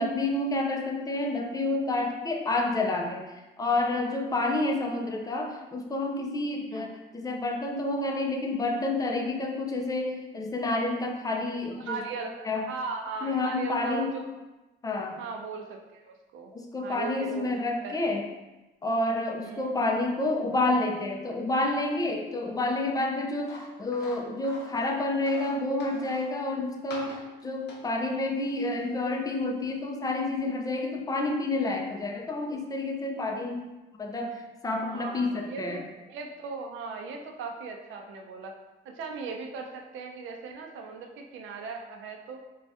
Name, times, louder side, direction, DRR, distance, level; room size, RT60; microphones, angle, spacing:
voice 1, 0.0-3.2 3.6-12.0 12.5-12.7 13.2-14.1 14.8-15.2 16.5-18.2 18.8-35.8, left 2 dB, 20° left, 2 dB, 0.4 m, -29 dB
voice 2, 11.8-14.3 15.2-16.5 16.8-18.0 19.4-19.7 34.7-38.6 38.8-42.4, right 4 dB, 80° right, 2 dB, 0.5 m, -38 dB
sound 1, 23.4-24.8 25.3-26.2 26.9-27.4 27.7-27.8 28.4-28.5 29.6-29.7, left 2 dB, 60° left, 0.6 m, -44 dB
2.6 x 2.3 x 3.3 m, 1.1 s
cardioid pair, 90°, 20 cm